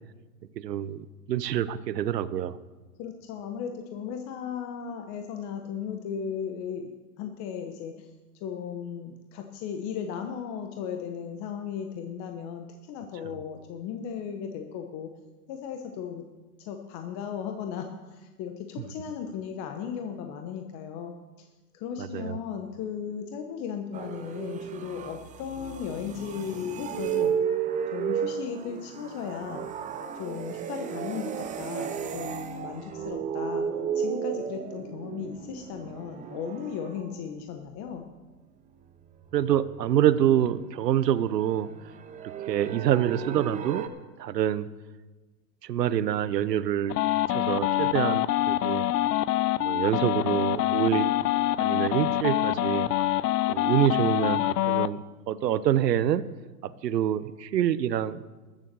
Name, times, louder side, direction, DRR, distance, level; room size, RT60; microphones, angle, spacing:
voice 1, 0.6-2.6 22.0-22.4 39.3-41.7 42.5-43.9 44.2-44.7 45.6-47.0 47.3-48.9 49.6-51.1 51.6-52.9 53.5-56.2 56.6-58.2, right 11 dB, 85° right, 15 dB, 0.8 m, -26 dB
voice 2, 3.0-8.1 8.4-15.1 15.5-16.2 16.6-21.5 21.7-27.4 27.9-29.6 30.2-33.7 33.9-38.1, left 7 dB, 35° left, 5 dB, 1.1 m, -36 dB
sound 1, 23.9-37.2 39.3-41.1 41.4-43.9, right 8 dB, 15° right, 0.7 m, -34 dB
sound 2, 46.9-54.9, left 14 dB, 75° left, 0.7 m, -25 dB
13.0 x 7.4 x 6.8 m, 1.2 s
hypercardioid pair, 120°, 48 cm